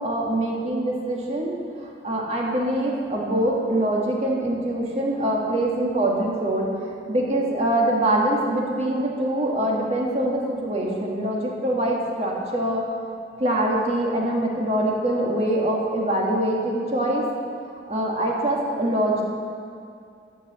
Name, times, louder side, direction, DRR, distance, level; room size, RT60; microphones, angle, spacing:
voice 1, 0.0-6.7 7.1-12.8 13.4-17.2 17.9-19.2, right 1 dB, 40° right, -2 dB, 1.9 m, -24 dB
11.5 x 7.5 x 7.2 m, 2.4 s
head